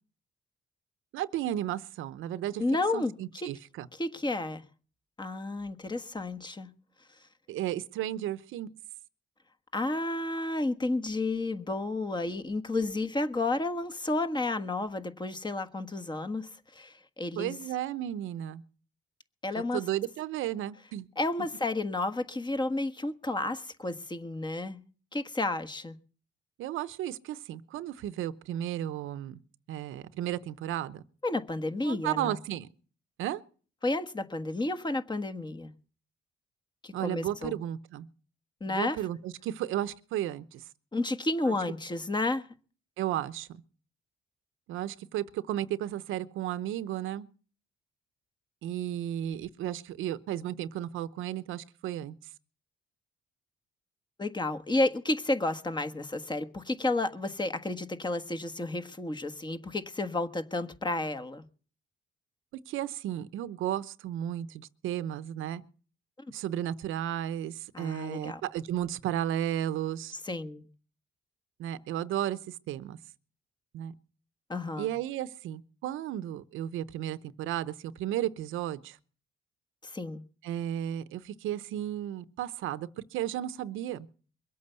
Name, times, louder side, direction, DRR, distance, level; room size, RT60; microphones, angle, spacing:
voice 1, 1.1-2.6 2.9-3.9 7.5-8.7 17.4-18.6 19.7-21.1 26.6-29.4 29.7-31.0 31.8-32.7 33.2-33.4 36.9-38.1 38.7-40.6 41.5-41.6 43.0-43.6 44.7-47.3 48.6-52.1 62.7-65.6 66.3-70.1 71.6-73.0 73.7-73.9 74.8-79.0 80.4-84.1, right 12 dB, 85° right, 0.8 m, -34 dB
voice 2, 2.6-3.5 4.0-4.6 5.2-6.7 9.7-17.5 19.4-19.8 21.2-24.8 25.1-26.0 31.2-32.4 33.8-35.7 36.8-37.6 38.6-39.0 40.9-42.5 54.2-61.4 66.2-66.3 67.7-68.4 70.2-70.7 74.5-74.9 79.8-80.2, left 2 dB, 20° left, 1.5 m, -31 dB
22.5 x 8.5 x 6.9 m
cardioid pair, 90°, 20 cm